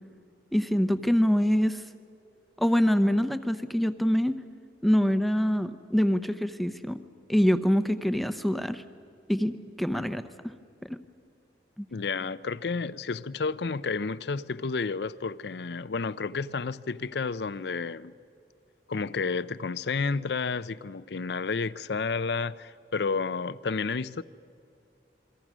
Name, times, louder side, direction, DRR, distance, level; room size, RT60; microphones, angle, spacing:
voice 1, 0.5-1.8 2.6-4.4 4.8-7.0 7.3-8.8 9.3-10.5 10.8-11.0, equal, ahead, 0.7 m, -25 dB
voice 2, 11.9-18.1 18.9-24.2, left 4 dB, 70° left, 0.5 m, -31 dB
28.5 x 23.0 x 6.2 m
head